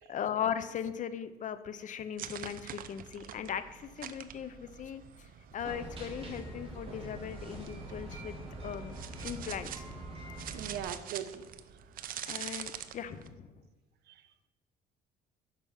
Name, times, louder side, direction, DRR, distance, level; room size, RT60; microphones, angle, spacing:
voice 1, 0.1-5.0 5.5-8.3 8.6-8.9 9.2-9.8 12.3-13.5, left 8 dB, 50° left, 12 dB, 0.8 m, -38 dB
sound 1, 2.2-5.7 7.3-13.3, right 10 dB, 55° right, 0.7 m, -45 dB
sound 2, 5.6-10.8, right 1 dB, 35° right, 3.3 m, -44 dB
voice 2, 10.5-11.5 12.0-12.2 14.1-14.5, right 10 dB, 75° right, 9 dB, 1.0 m, -41 dB
11.5 x 5.3 x 7.2 m, 1.3 s
cardioid pair, 110°, 17 cm